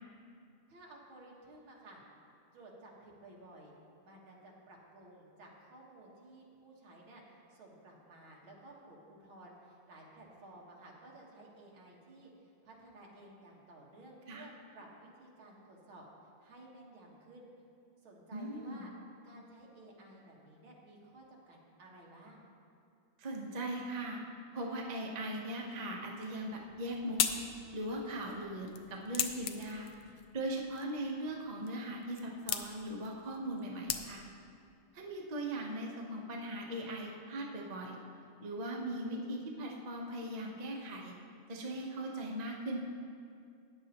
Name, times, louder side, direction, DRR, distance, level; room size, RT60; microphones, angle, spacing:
voice 1, 0.7-2.0 2.5-3.7 4.0-16.0 16.4-17.5 18.0-18.9 19.2-22.4, right 2 dB, 65° right, -2 dB, 2.3 m, -55 dB
voice 2, 18.3-18.9 23.2-24.2 24.5-27.2 27.7-29.9 30.3-34.2 34.9-38.0 38.4-41.2 41.5-42.8, right 1 dB, 50° right, -1 dB, 0.5 m, -39 dB
sound 1, 26.5-34.5, left 9 dB, 85° left, 0.9 m, -40 dB
14.0 x 9.5 x 2.9 m, 2.4 s
omnidirectional pair, 2.4 m